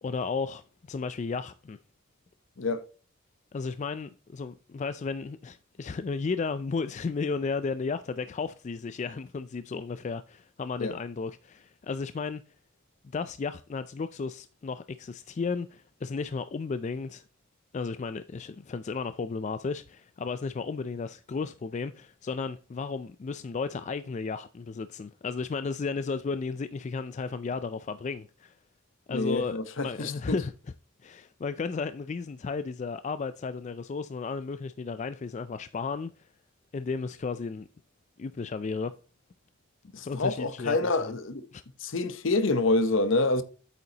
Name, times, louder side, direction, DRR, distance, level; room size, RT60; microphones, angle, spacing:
voice 1, 0.0-1.8 3.5-12.4 13.1-17.2 17.7-28.5 29.1-30.5 31.0-36.1 36.7-37.7 38.2-38.9 40.1-41.2 41.5-41.6, left 4 dB, 35° left, 0.3 m, -34 dB
voice 2, 29.1-30.4 39.9-41.5 41.8-43.4, left 2 dB, 65° left, 0.9 m, -27 dB
8.5 x 6.7 x 2.9 m
head